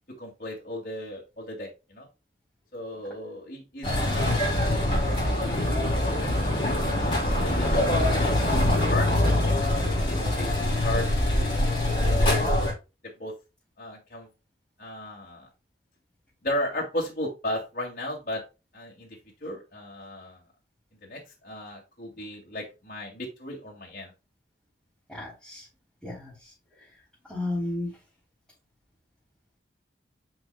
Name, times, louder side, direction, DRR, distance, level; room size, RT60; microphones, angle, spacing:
voice 1, 0.1-2.1 2.7-5.5 5.9-6.6 6.9-7.2 7.4-10.5 10.8-11.1 11.4-11.5 11.9-12.4 13.0-13.3 13.8-14.3 14.8-15.5 16.4-18.4 18.7-20.4 21.0-24.1, left 1 dB, 50° left, -3 dB, 2.4 m, -36 dB
sound 1, 3.8-12.7, left 1 dB, 30° left, 3.1 m, -24 dB
voice 2, 25.1-25.6 26.0-26.3 27.3-27.9, left 2 dB, ahead, -9 dB, 3.3 m, -32 dB
9.8 x 5.0 x 2.3 m, 0.27 s
head